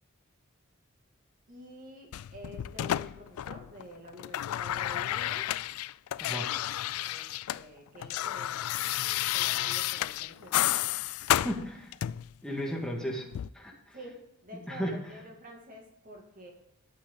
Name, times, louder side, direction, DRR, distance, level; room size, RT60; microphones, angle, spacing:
voice 1, 1.5-5.5 7.0-8.6 9.3-10.9 12.6-12.8 13.9-16.5, equal, 40° right, 1 dB, 2.4 m, -48 dB
sound 1, 2.1-3.8 4.1-7.6 7.9-12.3 13.3-13.5, left 13 dB, 80° left, 0.3 m, -31 dB
voice 2, 11.4-11.9 12.4-13.2 13.5-14.0 14.7-14.9, equal, 5° left, -1 dB, 1.9 m, -34 dB
11.5 x 8.6 x 3.9 m, 0.83 s
head